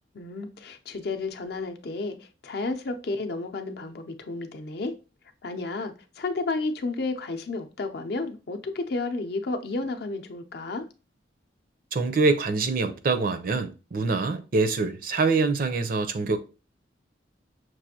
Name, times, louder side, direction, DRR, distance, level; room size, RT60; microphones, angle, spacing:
voice 1, 0.1-4.9 5.4-10.9, left 3 dB, 60° left, 0.6 m, -32 dB
voice 2, 11.9-16.4, right 3 dB, 50° right, 0.5 m, -25 dB
6.1 x 2.5 x 2.7 m
head